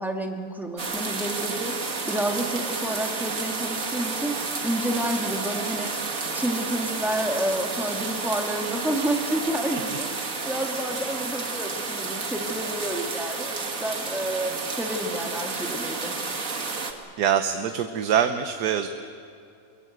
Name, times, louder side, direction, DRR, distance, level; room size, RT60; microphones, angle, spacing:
voice 1, 0.0-1.8 2.1-5.9 6.3-10.1 10.4-16.1, right 1 dB, ahead, 1 dB, 2.2 m, -29 dB
sound 1, 0.8-16.9, right 4 dB, 55° right, 2.2 m, -31 dB
voice 2, 17.2-18.9, right 8 dB, 85° right, 7 dB, 1.5 m, -24 dB
24.0 x 22.5 x 8.0 m, 2.5 s
omnidirectional pair, 1.7 m